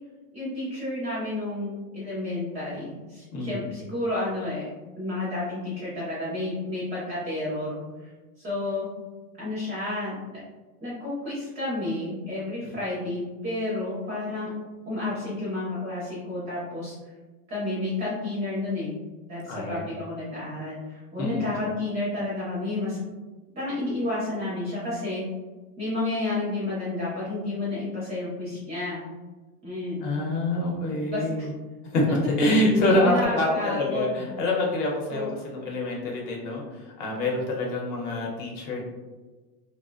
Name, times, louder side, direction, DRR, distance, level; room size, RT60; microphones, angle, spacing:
voice 1, 0.3-4.7 5.0-8.1 8.4-8.9 9.4-10.4 10.8-14.5 14.9-16.9 17.5-19.0 19.3-23.0 23.5-25.2 25.8-29.0 29.6-30.0 31.1-31.5 32.8-34.1 35.1-35.3, left 2 dB, 15° right, -9 dB, 0.4 m, -31 dB
voice 2, 3.3-3.7 19.5-19.9 21.2-21.5 30.0-31.5 31.9-38.8, left 1 dB, 55° left, -1 dB, 0.8 m, -26 dB
2.4 x 2.1 x 2.4 m, 1.2 s
supercardioid pair, 155°, 45 cm